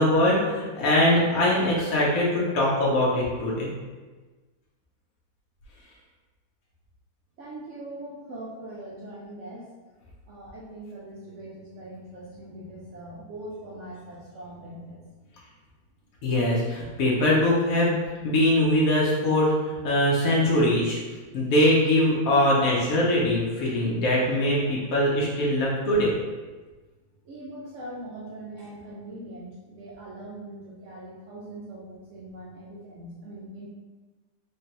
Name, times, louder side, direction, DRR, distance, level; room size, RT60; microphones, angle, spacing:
voice 1, 0.0-3.7 16.2-17.9 18.2-21.0 21.3-26.2, left 1 dB, 60° left, -5 dB, 1.0 m, -22 dB
voice 2, 7.4-9.7 10.3-15.0 27.2-33.7, right 1 dB, 75° right, -5 dB, 0.6 m, -41 dB
3.7 x 3.3 x 2.8 m, 1.3 s
omnidirectional pair, 2.0 m